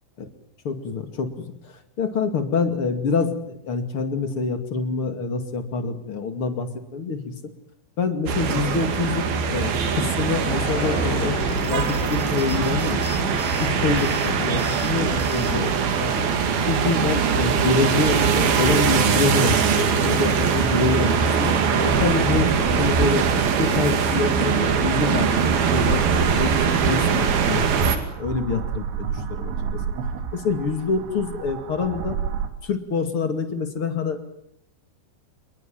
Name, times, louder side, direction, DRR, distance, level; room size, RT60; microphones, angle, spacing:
voice 1, 0.6-7.3 8.0-13.0 13.6-15.7 16.0-16.3 16.6-21.5 21.8-22.5 22.8-27.9 28.2-29.8 30.3-32.2 32.6-34.4, left 4 dB, 40° left, 8 dB, 2.5 m, -26 dB
sound 1, 8.3-28.0, right 6 dB, 60° right, 4.0 m, -22 dB
sound 2, 10.2-15.8, left 2 dB, 20° left, 7.3 m, -32 dB
sound 3, 21.9-32.5, right 6 dB, 85° right, 4.4 m, -30 dB
28.5 x 22.0 x 7.5 m, 0.71 s
omnidirectional pair, 5.1 m